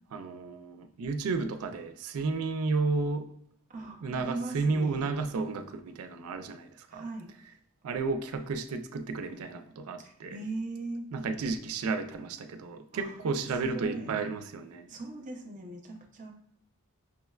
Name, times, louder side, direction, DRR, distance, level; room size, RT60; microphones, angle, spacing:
voice 1, 0.1-3.3 4.0-7.0 7.8-10.4 11.1-14.9, right 4 dB, 85° right, 8 dB, 0.4 m, -32 dB
voice 2, 3.7-5.1 6.9-7.3 10.0-11.1 12.9-13.2 13.7-14.1 14.9-16.3, right 2 dB, 35° right, 2 dB, 0.6 m, -39 dB
5.8 x 2.1 x 2.3 m, 0.72 s
head